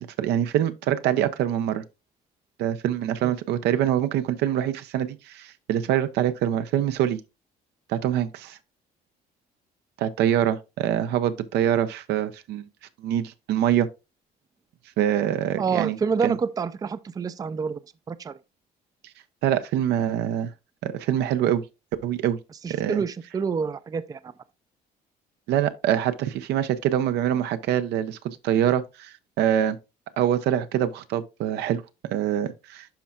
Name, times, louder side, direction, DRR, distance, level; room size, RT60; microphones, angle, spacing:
voice 1, 0.0-1.8 2.6-7.2 7.9-8.6 10.0-12.6 13.0-13.9 15.0-16.0 16.2-16.4 19.4-20.5 20.8-21.6 22.0-22.4 22.7-23.0 25.5-29.8 30.2-31.8 32.1-32.9, right 10 dB, 80° right, 0.7 m, -24 dB
voice 2, 15.6-17.8 18.1-18.3 22.6-24.3, right 5 dB, 20° right, 0.4 m, -27 dB
11.5 x 4.2 x 2.4 m
cardioid pair, 110°, 17 cm